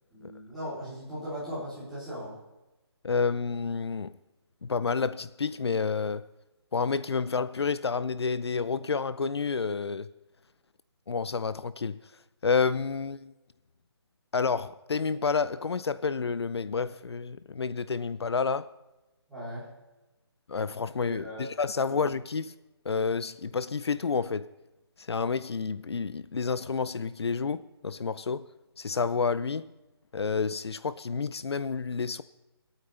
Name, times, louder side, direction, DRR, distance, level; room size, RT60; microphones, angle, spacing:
voice 1, 0.1-2.3 19.3-19.7 21.1-21.5 21.9-22.0, equal, ahead, 3.4 m, -38 dB
voice 2, 3.0-4.1 4.6-6.3 6.7-10.1 11.1-12.0 12.4-13.3 14.3-18.7 20.5-22.5 22.8-24.5 25.0-28.5 28.8-29.7 30.1-32.2, left 5 dB, 75° left, 0.5 m, -29 dB
25.5 x 9.0 x 3.4 m
hypercardioid pair, 175°, 14 cm